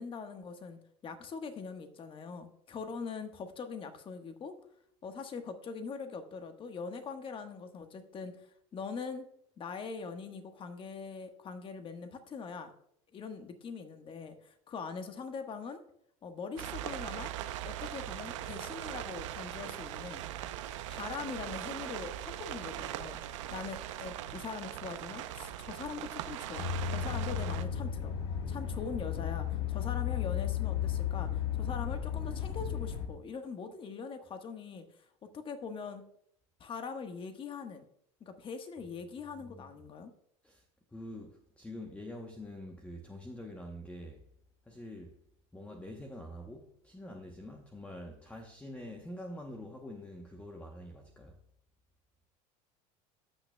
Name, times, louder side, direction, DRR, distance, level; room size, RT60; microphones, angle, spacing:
voice 1, 0.0-4.5 5.0-8.3 8.7-9.2 9.6-12.7 13.1-15.8 16.2-17.3 17.6-20.2 20.9-28.1 28.5-34.8 35.3-36.0 36.6-37.8 38.2-40.1, left 5 dB, 35° left, 1.3 m, -42 dB
sound 1, 16.6-27.7, right 12 dB, 85° right, 0.7 m, -40 dB
sound 2, 26.6-33.1, left 9 dB, 75° left, 1.5 m, -34 dB
voice 2, 39.4-39.7 40.4-40.6 40.9-44.2 44.7-45.2 45.5-51.4, left 1 dB, 10° left, 0.9 m, -46 dB
15.0 x 6.1 x 2.3 m
supercardioid pair, 105°, 16 cm